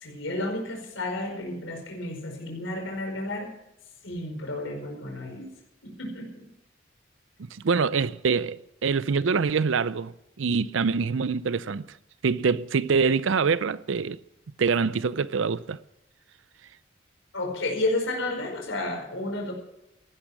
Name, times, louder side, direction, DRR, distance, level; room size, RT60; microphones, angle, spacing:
voice 1, 0.0-3.5 4.0-5.5 5.8-6.4 17.3-19.5, left 2 dB, 90° left, 5.0 m, -31 dB
voice 2, 7.6-11.9 12.2-14.2 14.6-15.8, right 5 dB, 85° right, 0.5 m, -25 dB
15.5 x 11.5 x 6.1 m
head